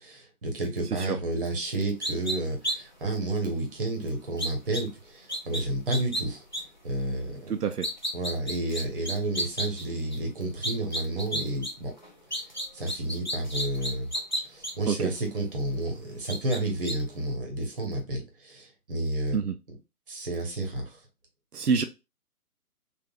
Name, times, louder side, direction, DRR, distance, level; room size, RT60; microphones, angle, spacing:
voice 1, 0.0-6.4 6.8-7.5 8.1-11.9 12.7-14.1 14.4-19.4 20.1-21.0, right 2 dB, 35° right, 2 dB, 1.1 m, -31 dB
sound 1, 2.0-2.3 2.6-2.7 3.1-3.2 4.4-4.8 5.3-5.6 5.9-6.2 6.5-6.6 7.6-9.9 10.1-10.2 10.6-11.7 12.0-14.7 15.3-15.4 16.3-16.6 16.8-16.9, equal, 30° left, 0.4 m, -31 dB
voice 2, 7.5-7.9 14.9-15.1 19.3-19.5 21.5-21.8, right 6 dB, 85° right, 7 dB, 0.6 m, -26 dB
3.5 x 2.5 x 2.3 m, 0.25 s
figure-of-eight pair, 145°, 46 cm